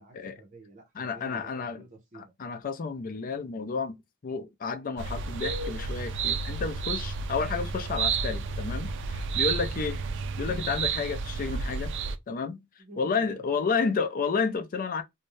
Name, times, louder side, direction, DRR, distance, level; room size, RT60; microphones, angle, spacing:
voice 1, 0.0-2.3 12.8-13.4, right 2 dB, 40° right, 0.7 m, -50 dB
voice 2, 1.0-1.8 2.4-4.0 4.2-10.0 10.4-11.9 12.3-12.6 13.0-15.0, left 5 dB, 45° left, 0.4 m, -31 dB
sound 1, 5.0-12.2, right 5 dB, 60° right, 0.3 m, -31 dB
2.6 x 2.2 x 3.0 m
head